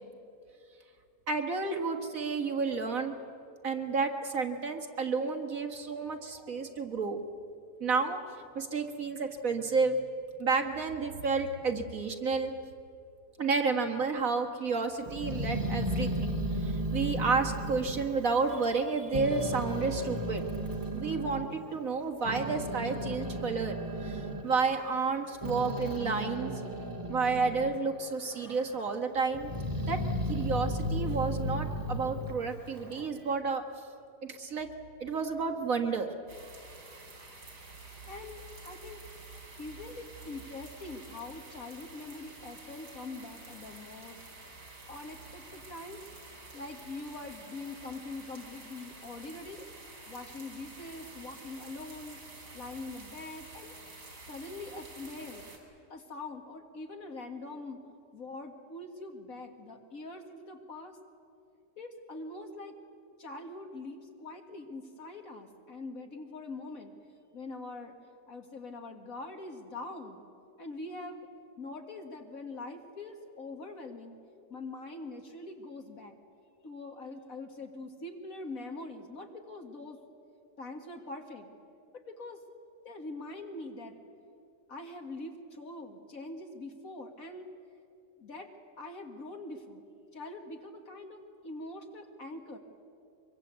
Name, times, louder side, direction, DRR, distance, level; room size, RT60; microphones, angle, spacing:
voice 1, 1.3-3.2 3.6-7.2 7.8-8.2 8.6-10.0 10.4-12.5 13.4-20.4 20.9-26.5 27.1-29.5 29.9-30.0 30.3-33.6 34.2-34.7 35.0-36.1, right 4 dB, 55° right, 3 dB, 2.1 m, -31 dB
Growling, 15.0-18.8 19.1-21.4 22.0-27.8 28.2-28.9 29.3-33.1, equal, 10° right, 2.4 m, -35 dB
sound 1, 36.3-55.6, right 3 dB, 75° right, 4.7 m, -49 dB
voice 2, 38.1-39.0 39.6-46.0 46.5-49.6 50.1-52.2 52.5-53.8 54.3-55.5 55.9-57.8 58.1-61.0 61.8-62.8 63.2-67.0 67.3-68.0 68.3-70.2 70.6-71.3 71.6-74.2 74.5-76.2 76.6-80.0 80.6-81.5 81.9-82.4 82.8-84.0 84.7-87.5 88.2-88.5 88.8-89.8 90.1-92.6, left 2 dB, 55° left, 4 dB, 2.3 m, -43 dB
24.0 x 23.5 x 8.2 m, 2.5 s
omnidirectional pair, 1.7 m